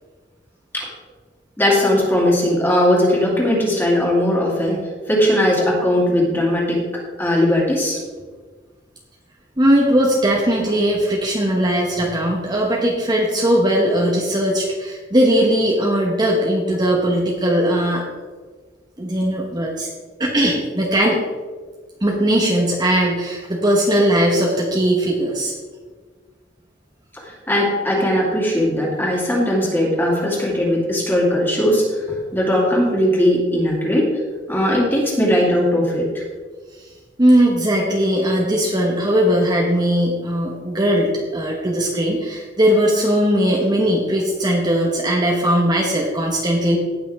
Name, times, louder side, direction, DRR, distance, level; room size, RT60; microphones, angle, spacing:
voice 1, 1.6-4.8 5.1-6.8 7.2-8.0 27.5-31.8 32.3-34.1 34.5-36.0, left 1 dB, 10° left, -3 dB, 2.6 m, -18 dB
voice 2, 9.6-18.0 19.0-19.9 20.2-21.2 22.0-25.5 37.2-46.8, equal, 25° right, -2 dB, 1.2 m, -19 dB
17.0 x 6.2 x 3.6 m, 1.5 s
head